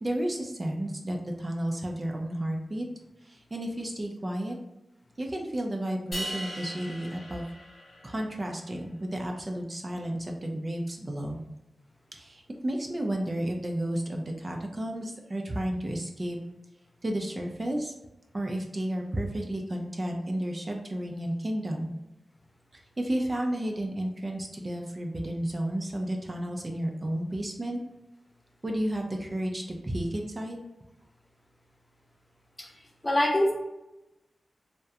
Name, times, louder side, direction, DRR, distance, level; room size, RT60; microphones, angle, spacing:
voice 1, 0.0-2.9 3.2-4.6 5.2-7.4 8.0-11.4 12.1-16.4 17.0-17.9 18.3-21.9 22.7-27.8 28.6-30.6, right 1 dB, 35° right, 2 dB, 0.3 m, -32 dB
sound 1, 6.1-8.4, right 1 dB, 75° left, 1.0 m, -39 dB
voice 2, 33.0-33.5, left 1 dB, 30° left, -2 dB, 0.6 m, -24 dB
2.3 x 2.1 x 2.7 m, 0.97 s
cardioid pair, 55°, 0 cm